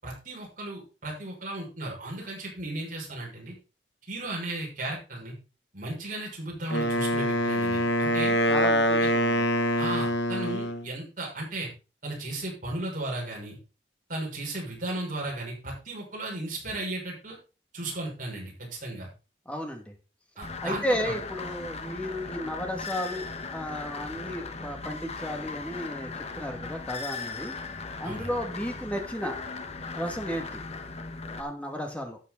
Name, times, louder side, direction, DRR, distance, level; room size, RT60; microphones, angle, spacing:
voice 1, 0.0-3.5 4.1-5.3 5.7-8.4 9.0-9.1 9.8-11.7 12.0-13.6 14.1-17.4 17.7-19.1 20.4-21.1 28.0-28.3, right 2 dB, 50° right, -2 dB, 6.3 m, -35 dB
Wind instrument woodwind instrument, 6.7-10.9, equal, 75° left, 1.3 m, -25 dB
voice 2, 8.5-9.4 19.5-19.9 20.6-29.4 29.9-30.5 31.4-32.2, equal, 10° left, 3 dB, 2.4 m, -34 dB
sound 1, 20.4-31.4, left 4 dB, 40° left, 1.3 m, -38 dB
13.0 x 8.3 x 4.0 m, 0.32 s
head